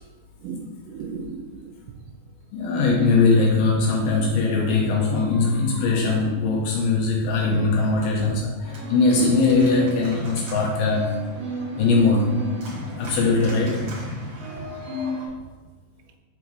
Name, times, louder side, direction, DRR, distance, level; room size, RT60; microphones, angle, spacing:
voice 1, 0.4-1.7 5.9-6.4 7.4-7.7 9.2-9.4 11.7-11.8, right 5 dB, 85° right, 5 dB, 1.9 m, -33 dB
voice 2, 2.5-11.2 11.8-12.4 13.0-13.9, left 3 dB, 80° left, -2 dB, 2.5 m, -21 dB
Organ, 8.6-15.3, equal, 55° right, 1.6 m, -34 dB
5.5 x 4.7 x 4.6 m, 1.3 s
omnidirectional pair, 4.3 m